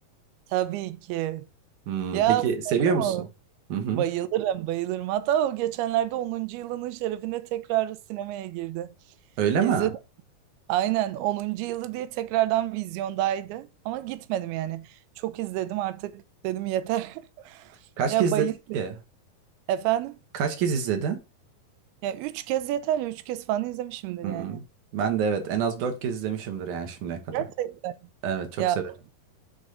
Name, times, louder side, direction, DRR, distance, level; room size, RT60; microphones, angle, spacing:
voice 1, 0.5-1.5 2.1-3.3 3.9-8.9 9.6-9.9 10.7-14.9 15.2-17.7 18.1-18.8 19.7-20.2 22.0-24.7 27.3-27.9 28.6-28.8, right 13 dB, 85° right, 2.6 m, -28 dB
voice 2, 1.9-3.2 3.7-4.0 9.4-9.9 18.0-18.5 18.7-19.0 20.3-21.2 24.2-24.6 24.9-27.2 28.2-28.8, right 7 dB, 65° right, 2.3 m, -26 dB
6.5 x 4.1 x 4.9 m
omnidirectional pair, 4.4 m